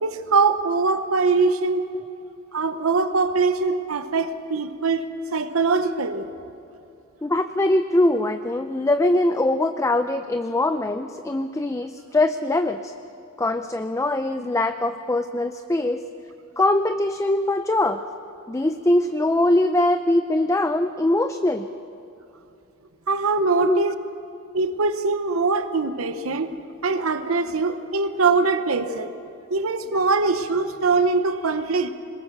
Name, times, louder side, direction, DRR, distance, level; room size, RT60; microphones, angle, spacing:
voice 1, 0.0-1.9 2.5-5.1 5.3-6.3 23.1-24.0 24.5-26.5 26.8-29.1 29.5-31.9, right 4 dB, 80° right, 10 dB, 0.9 m, -22 dB
voice 2, 7.2-12.9 13.4-16.0 16.6-18.0 18.5-21.7 23.6-23.8 26.5-26.6 29.9-30.0, left 1 dB, 15° left, 8 dB, 0.5 m, -22 dB
22.0 x 20.5 x 6.6 m, 2.8 s
head